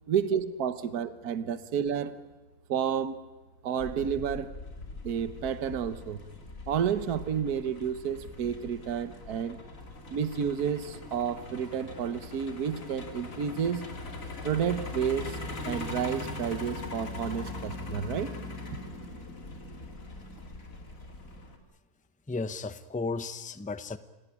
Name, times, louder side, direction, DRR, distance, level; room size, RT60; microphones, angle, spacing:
voice 1, 0.1-2.2 2.7-3.2 3.6-4.5 5.0-6.2 6.7-9.6 10.1-13.8 14.4-15.4 15.6-18.3, right 8 dB, 70° right, 12 dB, 1.6 m, -30 dB
Truck, 3.8-21.6, left 2 dB, 55° left, 2.9 m, -41 dB
voice 2, 22.3-24.0, left 3 dB, 10° left, 13 dB, 0.5 m, -34 dB
27.5 x 17.5 x 10.0 m, 1.2 s
omnidirectional pair, 1.7 m